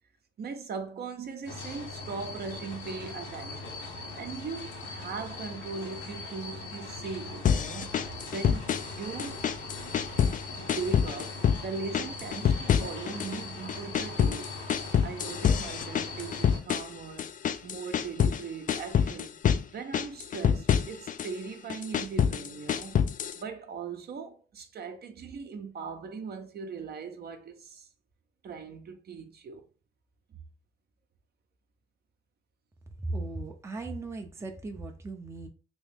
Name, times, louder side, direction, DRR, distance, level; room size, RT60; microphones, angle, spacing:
voice 1, 0.4-3.7 4.1-9.5 10.5-14.6 15.0-17.3 17.6-19.4 19.7-23.0 23.3-27.9 28.4-29.6 30.3-30.4, right 5 dB, 50° right, 0.7 m, -39 dB
sound 1, 1.5-16.6, left 3 dB, 80° left, 1.2 m, -41 dB
sound 2, 7.4-8.9 9.2-10.4 10.7-11.6 11.9-13.4 13.7-18.4 18.7-19.6 19.9-21.3 21.7-23.4, left 8 dB, 45° left, 0.4 m, -26 dB
voice 2, 33.0-35.5, right 2 dB, 15° right, 0.6 m, -37 dB
3.0 x 2.7 x 3.5 m
cardioid pair, 90°, 20 cm